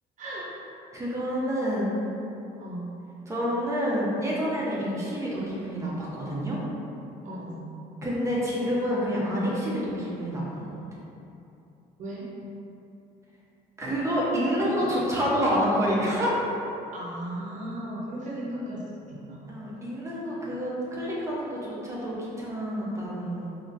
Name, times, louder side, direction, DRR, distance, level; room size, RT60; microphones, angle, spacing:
voice 1, 0.2-0.5 2.6-2.9 4.8-5.1 7.2-7.7 12.0-12.3 16.9-19.4, right 1 dB, 45° right, -6 dB, 0.9 m, -36 dB
voice 2, 0.9-2.0 3.3-6.6 8.0-10.7 13.8-16.3 19.5-23.5, equal, 15° right, -6 dB, 0.8 m, -28 dB
3.9 x 2.9 x 2.6 m, 2.8 s
cardioid pair, 110°, 17 cm